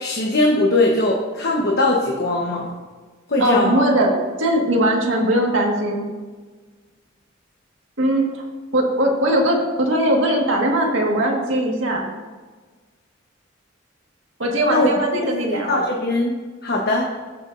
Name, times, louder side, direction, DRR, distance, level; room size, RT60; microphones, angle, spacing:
voice 1, 0.0-2.7 3.3-3.8 14.7-14.9 15.7-16.3 16.6-17.1, left 2 dB, 55° left, -1 dB, 1.1 m, -20 dB
voice 2, 3.4-6.1 8.0-8.4 8.7-12.1 14.4-15.9, right 1 dB, 75° right, 0 dB, 1.8 m, -20 dB
14.5 x 7.0 x 2.6 m, 1.4 s
head